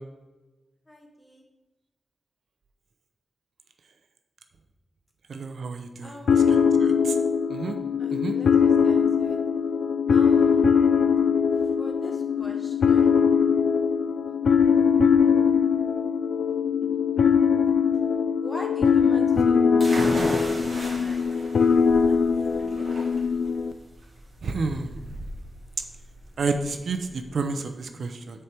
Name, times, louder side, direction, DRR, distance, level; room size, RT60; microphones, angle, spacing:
voice 1, 0.9-1.4 6.0-6.4 8.0-9.4 10.1-10.7 11.5-13.2 14.3-14.4 18.4-21.3 21.9-22.8, left 1 dB, 15° left, 1 dB, 1.4 m, -43 dB
voice 2, 5.3-7.2 7.5-7.8 8.1-8.4 24.4-25.2 25.8-25.9 26.4-28.4, right 4 dB, 75° right, 7 dB, 0.6 m, -31 dB
sound 1, 6.3-23.7, left 6 dB, 85° left, 0.4 m, -21 dB
sound 2, 19.8-27.3, right 1 dB, 40° right, 2.8 m, -36 dB
6.8 x 4.5 x 6.7 m, 1.1 s
wide cardioid pair, 125°, 0 cm